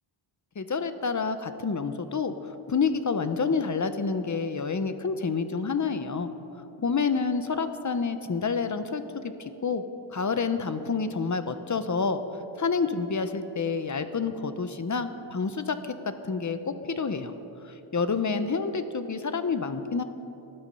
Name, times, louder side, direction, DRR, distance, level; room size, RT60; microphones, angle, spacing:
voice 1, 0.6-6.3 6.8-9.8 10.1-12.2 12.6-17.3 17.6-20.0, left 5 dB, 35° left, 10 dB, 0.9 m, -28 dB
20.5 x 12.5 x 5.5 m, 3.0 s
wide cardioid pair, 160°, 50 cm